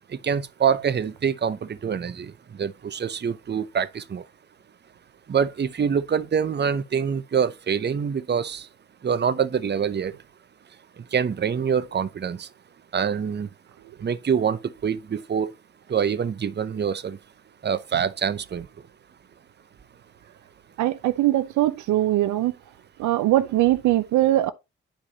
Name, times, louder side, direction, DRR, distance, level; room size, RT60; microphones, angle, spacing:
voice 1, 0.2-2.3 2.6-4.2 5.3-8.7 9.0-10.1 11.1-12.5 12.9-13.5 14.0-15.5 15.9-17.2 17.6-18.7, right 7 dB, 35° right, 0.7 m, -25 dB
voice 2, 20.8-22.5 23.0-24.5, right 15 dB, 80° right, 0.6 m, -21 dB
10.0 x 4.8 x 2.8 m
supercardioid pair, 45°, 29 cm